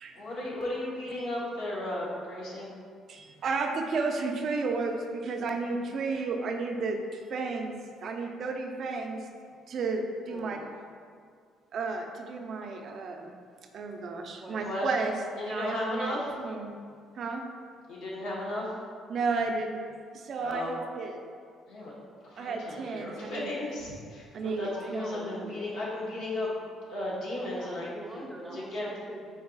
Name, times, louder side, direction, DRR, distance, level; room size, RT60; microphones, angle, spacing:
voice 1, 0.1-2.7 14.6-14.9 15.4-16.2 17.9-18.7 20.4-20.8 21.7-21.9 22.2-24.3 24.6-24.7 24.9-26.5 26.9-27.9 28.5-28.9, left 1 dB, 75° left, -6 dB, 1.1 m, -34 dB
voice 2, 3.1-9.3 9.7-10.6 11.7-13.3 13.7-15.1 15.5-16.7 17.2-17.4 19.1-19.8 20.1-21.2 22.4-23.5 24.3-25.5, right 4 dB, 50° right, 3 dB, 0.4 m, -33 dB
voice 3, 10.3-10.8 14.4-14.7 24.7-25.4 27.4-29.3, right 1 dB, 5° right, -1 dB, 0.6 m, -44 dB
4.4 x 2.3 x 3.8 m, 2.1 s
cardioid pair, 120°, 0 cm